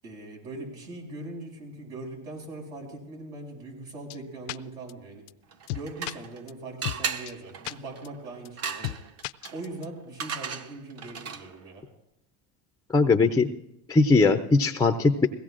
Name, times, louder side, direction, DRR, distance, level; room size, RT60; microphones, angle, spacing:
voice 1, 0.0-5.2 5.7-9.0 9.5-11.8, right 2 dB, 80° right, -1 dB, 6.5 m, -40 dB
sound 1, 4.1-4.2 4.5-4.6 4.9-5.0 5.3-5.4 5.7-6.1 6.5-6.6 6.9-7.0 7.3-7.4 7.7-7.8 8.1-8.2 8.5-8.6 8.8-9.0 9.2-9.9, left 17 dB, 85° left, 0.5 m, -33 dB
sound 2, 5.5-6.4 6.8-11.6, right 6 dB, 35° right, 0.8 m, -37 dB
voice 2, 12.9-13.5 13.9-15.3, left 3 dB, 10° left, 7 dB, 0.4 m, -20 dB
21.5 x 16.5 x 2.5 m, 0.84 s
supercardioid pair, 110°, 44 cm